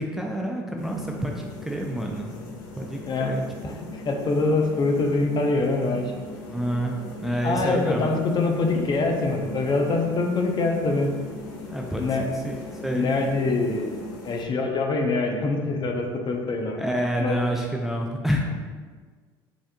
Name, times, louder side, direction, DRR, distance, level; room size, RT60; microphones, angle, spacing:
voice 1, 0.0-3.4 4.4-4.5 6.5-8.1 11.7-12.1 12.4-12.6 12.8-13.1 16.8-18.4, equal, ahead, 0 dB, 0.5 m, -28 dB
sound 1, 0.8-14.4, left 2 dB, 75° left, 0.8 m, -39 dB
voice 2, 3.6-6.1 7.4-11.1 12.0-12.3 12.9-13.9 14.2-16.8 17.2-17.4, left 3 dB, 40° left, 3 dB, 0.7 m, -24 dB
5.0 x 3.5 x 2.3 m, 1.5 s
hypercardioid pair, 70°, 12 cm